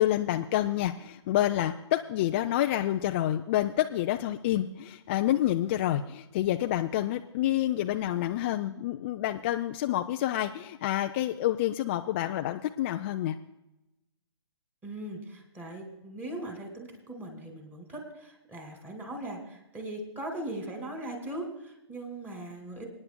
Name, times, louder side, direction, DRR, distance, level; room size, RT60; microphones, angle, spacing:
voice 1, 0.0-13.4, left 13 dB, 25° left, 5 dB, 0.3 m, -28 dB
voice 2, 14.8-22.9, right 1 dB, 10° right, 3 dB, 2.3 m, -39 dB
26.5 x 9.7 x 2.2 m, 0.93 s
figure-of-eight pair, 135°, 15 cm